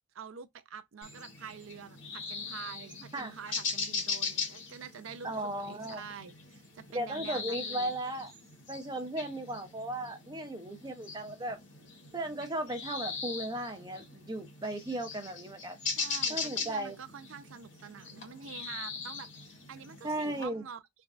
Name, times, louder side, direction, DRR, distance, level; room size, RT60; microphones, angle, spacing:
voice 1, 0.1-8.0 15.9-20.8, right 6 dB, 70° right, 0.5 m, -47 dB
sound 1, 1.0-20.5, left 5 dB, 60° left, 1.4 m, -40 dB
voice 2, 5.2-6.0 6.9-8.3 8.7-11.6 12.1-16.0 16.3-17.0 20.0-20.7, right 1 dB, 20° right, 0.7 m, -36 dB
3.4 x 2.2 x 2.5 m
head